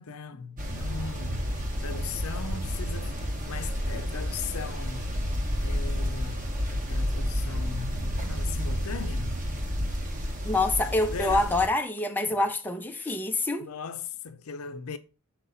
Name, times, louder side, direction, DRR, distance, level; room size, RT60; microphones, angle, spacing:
voice 1, 0.0-9.4 10.9-11.5 12.3-12.5 13.0-13.2 13.6-15.0, left 6 dB, 75° left, 0.6 m, -39 dB
sound 1, 0.6-11.7, equal, 35° right, 1.0 m, -30 dB
voice 2, 10.4-13.7, left 2 dB, 10° left, 0.5 m, -26 dB
5.9 x 4.0 x 3.9 m
head